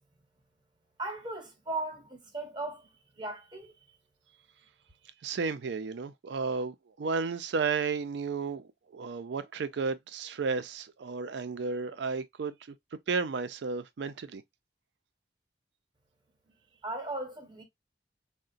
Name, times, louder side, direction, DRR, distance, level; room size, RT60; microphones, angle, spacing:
voice 1, 1.0-3.7 16.8-17.6, right 2 dB, 25° right, 0.8 m, -37 dB
voice 2, 5.2-12.5 13.1-14.4, right 4 dB, 70° right, 0.4 m, -33 dB
3.8 x 2.1 x 2.4 m
head